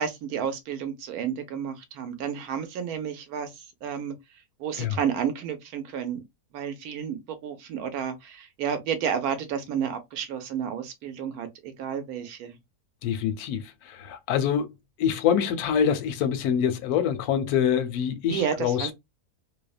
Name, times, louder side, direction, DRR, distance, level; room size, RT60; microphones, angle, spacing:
voice 1, 0.0-3.5 3.8-4.1 4.6-6.2 6.5-12.5 18.3-18.9, right 8 dB, 75° right, 1.1 m, -31 dB
voice 2, 13.0-14.7 15.0-18.9, left 8 dB, 85° left, 1.1 m, -25 dB
2.8 x 2.0 x 2.3 m
omnidirectional pair, 1.6 m